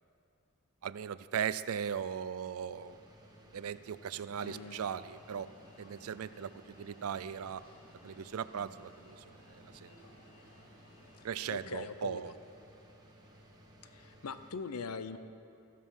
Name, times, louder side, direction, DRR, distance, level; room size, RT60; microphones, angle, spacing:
voice 1, 0.8-3.0 3.5-5.5 5.8-7.6 8.0-9.9 11.2-12.3, right 8 dB, 70° right, 15 dB, 0.4 m, -38 dB
sound 1, 2.7-14.5, equal, 20° right, 1.5 m, -59 dB
Alarm, 4.3-11.7, left 1 dB, 40° left, 2.3 m, -60 dB
voice 2, 4.4-4.8 11.5-12.4 13.8-15.2, left 5 dB, 85° left, 12 dB, 0.6 m, -42 dB
15.0 x 13.0 x 5.6 m, 2.6 s
head